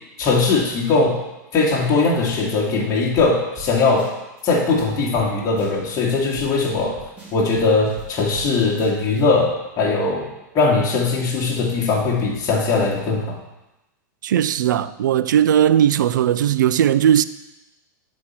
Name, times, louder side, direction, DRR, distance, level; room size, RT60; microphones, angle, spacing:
voice 1, 0.2-1.1 1.5-4.1 4.4-6.9 7.3-9.5 9.8-10.3 10.5-13.4, left 3 dB, 35° left, 2.2 m, -20 dB
sound 1, 3.2-3.3 3.6-3.7 4.0-4.4 4.8-4.9 5.1-5.3 5.6-6.0 6.4-8.5 8.8-9.2, equal, 15° right, 3.4 m, -41 dB
voice 2, 14.2-17.2, right 10 dB, 80° right, 0.4 m, -17 dB
10.5 x 4.5 x 5.7 m
hypercardioid pair, 105°, 10 cm